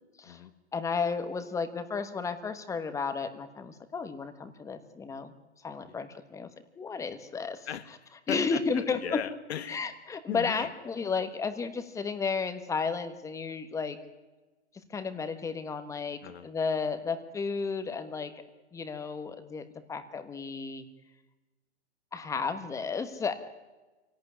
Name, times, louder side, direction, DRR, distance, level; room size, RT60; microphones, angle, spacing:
voice 1, 0.7-5.3 5.6-6.5 6.8-7.7 8.3-9.0 9.7-14.0 14.9-18.4 18.7-20.9 22.1-23.3, left 5 dB, 10° left, 10 dB, 1.4 m, -33 dB
voice 2, 7.7-9.9 10.3-10.7 16.2-16.5, left 10 dB, 65° left, 12 dB, 1.9 m, -38 dB
25.5 x 18.0 x 9.8 m, 1.2 s
hypercardioid pair, 150°, 34 cm